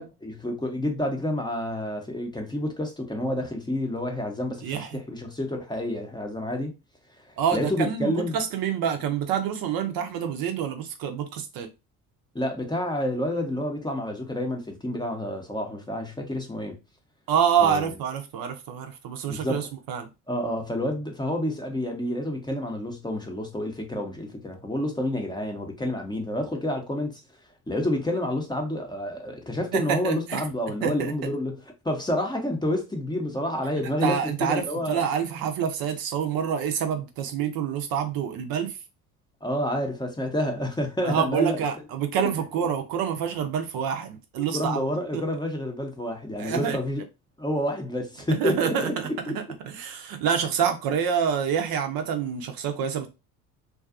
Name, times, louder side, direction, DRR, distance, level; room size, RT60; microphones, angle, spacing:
voice 1, 0.0-6.7 7.3-8.4 12.3-16.8 17.6-17.9 19.3-19.7 20.3-27.2 27.7-35.0 39.4-41.6 42.2-42.3 42.6-42.7 44.4-47.0 47.4-48.9 49.3-49.4, left 1 dB, 10° left, 0.6 m, -29 dB
voice 2, 4.6-5.0 7.4-11.7 17.3-20.1 29.7-30.4 30.8-31.1 34.0-38.7 41.0-44.8 45.1-45.2 46.4-46.8 48.3-49.4 49.7-53.1, right 8 dB, 55° right, 0.6 m, -27 dB
2.5 x 2.3 x 2.4 m
hypercardioid pair, 60°, 43 cm